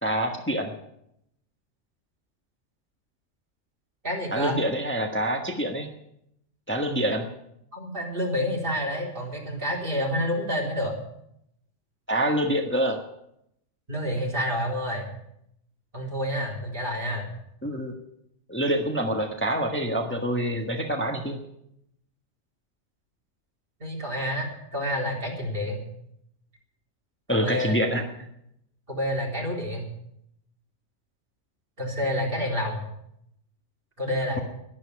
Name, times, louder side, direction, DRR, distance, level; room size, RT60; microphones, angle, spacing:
voice 1, 0.0-0.7 4.3-5.9 6.7-7.3 12.1-13.0 17.6-17.9 18.5-21.4 27.3-28.0, equal, 10° left, 3 dB, 1.4 m, -26 dB
voice 2, 4.0-4.6 7.7-10.9 13.9-15.1 15.9-17.3 23.8-25.8 27.3-27.7 28.9-29.9 31.8-32.8 34.0-34.4, equal, 45° right, -1 dB, 4.1 m, -28 dB
11.5 x 11.0 x 9.7 m, 0.77 s
omnidirectional pair, 1.3 m